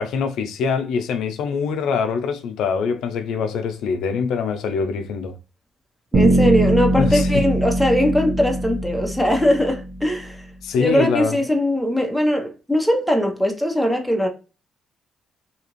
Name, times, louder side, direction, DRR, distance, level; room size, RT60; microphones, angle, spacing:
voice 1, 0.0-5.3 7.0-7.4 10.6-11.4, left 5 dB, 80° left, 0.5 m, -24 dB
voice 2, 6.1-10.4 10.8-14.3, equal, ahead, 0.8 m, -20 dB
Bass guitar, 6.1-10.2, right 1 dB, 55° right, 1.3 m, -21 dB
2.8 x 2.4 x 3.0 m
cardioid pair, 90°, 0 cm